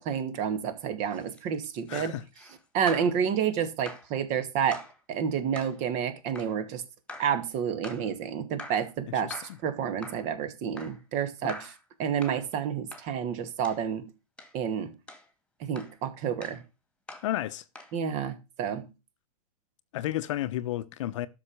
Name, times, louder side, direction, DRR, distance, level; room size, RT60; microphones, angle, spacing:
voice 1, 0.0-2.1 2.7-4.8 5.1-6.8 7.2-9.3 9.6-11.7 12.0-14.1 14.5-14.9 15.6-16.6 17.9-18.9, right 8 dB, 40° right, 2.4 m, -29 dB
sound 1, 1.1-3.2 3.9-4.1 4.7-5.0 5.5-5.8 6.4-6.6 7.1-7.4 7.8-8.1 8.6-8.9 9.3-9.6 10.0-10.3 10.8-11.0 11.5-11.8 12.2-12.5 12.9-13.1 13.6-13.8 14.4-14.6 15.1-15.3 15.8-16.0 16.4-16.6 17.1-17.3 17.8-18.0, left 2 dB, 5° left, 2.3 m, -44 dB
voice 2, 1.9-2.2 9.2-9.6 11.4-11.5 17.2-17.6 19.9-21.3, left 14 dB, 55° left, 1.0 m, -32 dB
12.5 x 6.6 x 6.5 m
hypercardioid pair, 110°, 19 cm